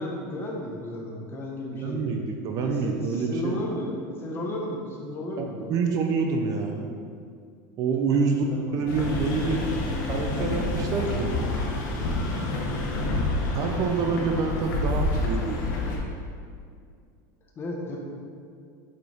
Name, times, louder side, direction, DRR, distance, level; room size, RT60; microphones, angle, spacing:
voice 1, 0.0-2.1 2.6-5.8 8.1-9.1 12.7-13.0 17.6-18.0, left 1 dB, 25° left, -1 dB, 1.1 m, -34 dB
voice 2, 1.7-3.7 5.4-6.9 7.8-8.4 8.7-9.6 10.0-11.3 13.5-15.7, right 5 dB, 35° right, 3 dB, 0.6 m, -27 dB
sound 1, 8.9-16.0, left 2 dB, 70° left, 1.7 m, -28 dB
8.3 x 6.5 x 3.5 m, 2.2 s
supercardioid pair, 160°, 10 cm